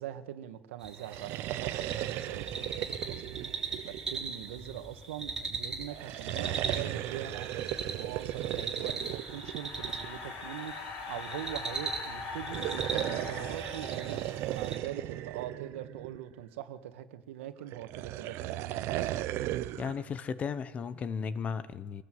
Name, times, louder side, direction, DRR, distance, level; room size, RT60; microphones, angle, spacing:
voice 1, 0.0-3.3 3.7-19.1, right 12 dB, 90° right, 8 dB, 2.1 m, -42 dB
sound 1, 0.8-14.7, right 4 dB, 10° right, 3.2 m, -40 dB
sound 2, 1.0-4.6 5.9-10.2 12.4-16.4 17.7-20.0, right 14 dB, 40° right, 0.9 m, -36 dB
sound 3, 8.5-14.8, left 4 dB, 40° left, 2.8 m, -43 dB
voice 2, 19.8-22.0, left 6 dB, 20° left, 15 dB, 0.9 m, -35 dB
24.5 x 18.5 x 7.9 m, 1.1 s
supercardioid pair, 170°, 7 cm